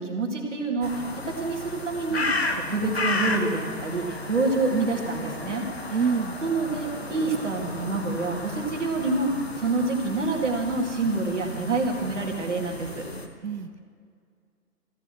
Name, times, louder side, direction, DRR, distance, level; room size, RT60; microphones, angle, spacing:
voice 1, 0.0-2.4 2.7-5.7 5.9-6.0 6.4-13.0, right 3 dB, 45° right, 1 dB, 2.1 m, -27 dB
sound 1, 0.8-13.3, left 2 dB, 40° left, 1.0 m, -33 dB
voice 2, 5.9-6.4 13.4-13.8, right 5 dB, 75° right, 7 dB, 0.9 m, -26 dB
14.5 x 9.7 x 7.5 m, 2.1 s
hypercardioid pair, 180°, 48 cm